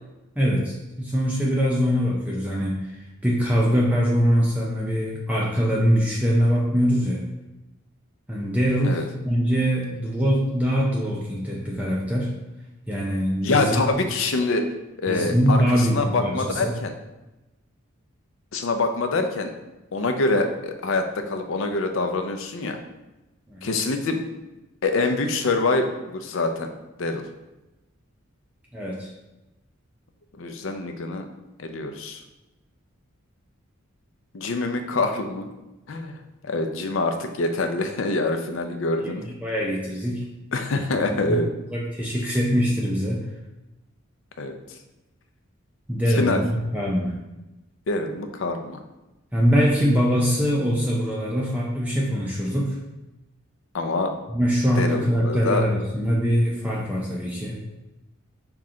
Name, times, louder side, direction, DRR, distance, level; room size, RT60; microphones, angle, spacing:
voice 1, 0.4-3.0 3.2-7.2 8.3-12.3 12.9-13.8 15.1-16.7 23.5-23.7 28.7-29.1 39.0-40.2 41.1-41.4 41.7-43.3 45.9-46.5 46.7-47.1 49.3-52.8 54.3-57.6, equal, 5° right, -5 dB, 0.5 m, -23 dB
voice 2, 13.4-14.6 15.0-16.9 18.5-19.5 19.9-22.8 23.6-24.3 24.8-26.7 27.0-27.2 30.4-31.3 31.6-32.2 34.3-35.5 35.9-36.2 36.4-39.2 40.5-41.5 44.4-44.6 46.1-46.4 47.9-48.8 53.7-54.1 54.8-55.7, left 3 dB, 65° left, 6 dB, 0.5 m, -25 dB
5.9 x 2.3 x 3.7 m, 1.0 s
head